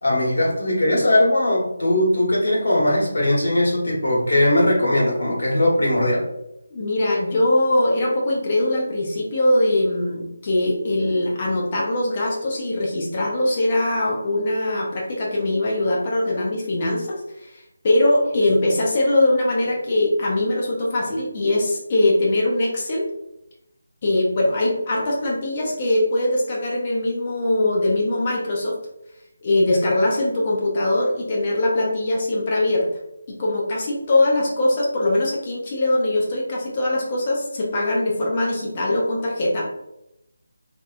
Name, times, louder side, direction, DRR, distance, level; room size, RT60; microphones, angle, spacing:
voice 1, 0.0-6.2, left 1 dB, 70° left, -4 dB, 1.2 m, -19 dB
voice 2, 6.7-23.0 24.0-28.8 29.4-32.8 33.3-39.7, left 1 dB, 20° left, -3 dB, 0.4 m, -21 dB
2.8 x 2.1 x 2.3 m, 0.84 s
figure-of-eight pair, 180°, 0 cm